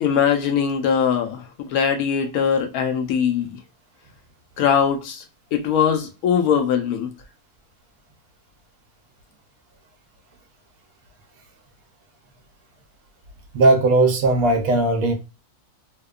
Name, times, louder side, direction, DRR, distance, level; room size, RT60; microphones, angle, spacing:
voice 1, 0.0-3.6 4.6-5.2 5.5-7.1, left 7 dB, 75° left, 1.0 m, -21 dB
voice 2, 13.5-15.1, right 2 dB, 70° right, 0.9 m, -17 dB
2.8 x 2.1 x 2.3 m
omnidirectional pair, 1.7 m